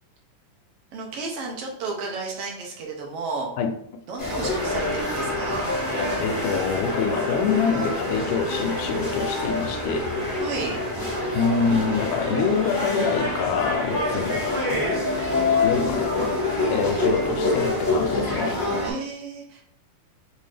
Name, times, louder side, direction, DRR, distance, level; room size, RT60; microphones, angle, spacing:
voice 1, 0.9-3.5 4.1-5.7 10.4-10.8 16.8-17.6 18.8-19.6, right 4 dB, 75° right, 0 dB, 1.4 m, -33 dB
sound 1, 4.2-18.9, left 2 dB, 40° left, 0.7 m, -26 dB
Train, 4.5-17.9, right 1 dB, 30° right, 1.2 m, -38 dB
voice 2, 6.2-10.1 11.3-14.7 15.6-16.3 16.7-18.6, left 5 dB, 90° left, 5 dB, 2.1 m, -26 dB
5.6 x 2.6 x 3.3 m, 0.67 s
omnidirectional pair, 3.7 m